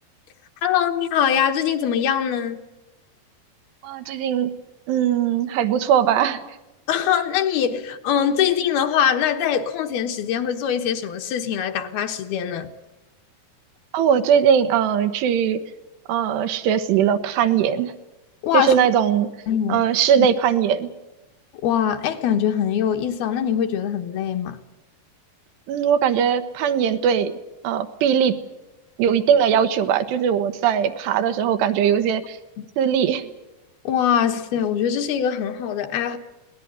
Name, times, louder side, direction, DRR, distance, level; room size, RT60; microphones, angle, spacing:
voice 1, 0.6-2.6 6.9-12.7 18.4-18.8 19.5-19.8 20.2-20.3 21.6-24.6 33.8-36.2, left 9 dB, 70° left, 3.0 m, -22 dB
voice 2, 3.8-4.5 4.9-6.4 13.9-15.6 16.1-18.0 18.5-19.3 19.7-20.9 25.7-27.3 27.6-28.3 29.0-32.4 32.8-33.3, right 8 dB, 85° right, 3.3 m, -20 dB
21.5 x 18.5 x 9.7 m
omnidirectional pair, 4.8 m